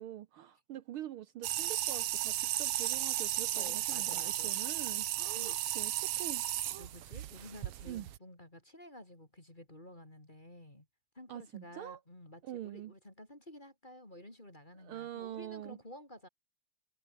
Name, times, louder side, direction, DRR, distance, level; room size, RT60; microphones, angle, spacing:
voice 1, 0.0-6.9 7.9-8.1 11.3-12.0 12.4-12.9 14.8-15.8, right 12 dB, 85° right, 1.1 m, -45 dB
sound 1, 1.4-8.2, right 13 dB, 65° right, 1.7 m, -35 dB
voice 2, 3.5-4.6 5.2-5.6 6.8-10.9 11.1-16.3, left 1 dB, 15° left, 3.5 m, -52 dB
omnidirectional pair, 3.4 m